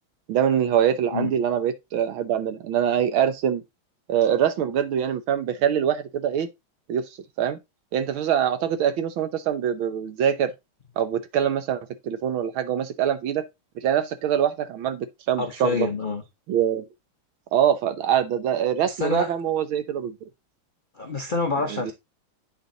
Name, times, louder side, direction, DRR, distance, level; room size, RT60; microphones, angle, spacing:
voice 1, 0.3-3.6 4.1-6.5 6.9-7.0 7.4-7.6 7.9-10.5 11.0-13.5 13.8-15.9 16.5-16.8 17.5-20.1 21.7-21.9, right 9 dB, 75° right, 1.7 m, -24 dB
voice 2, 15.4-16.2 18.8-19.3 21.0-21.9, left 3 dB, 75° left, 0.4 m, -27 dB
8.4 x 4.3 x 3.8 m
omnidirectional pair, 2.3 m